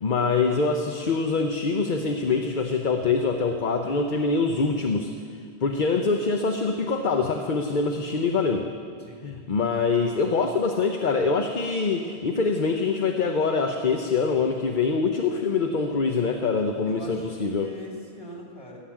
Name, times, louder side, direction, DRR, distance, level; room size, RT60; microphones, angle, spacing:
voice 1, 0.0-5.1 5.6-8.7 9.2-17.7, left 4 dB, 55° left, 4 dB, 0.9 m, -24 dB
voice 2, 16.8-17.3 17.6-18.8, left 1 dB, 35° left, -2 dB, 3.2 m, -42 dB
15.5 x 7.5 x 10.0 m, 2.2 s
omnidirectional pair, 1.0 m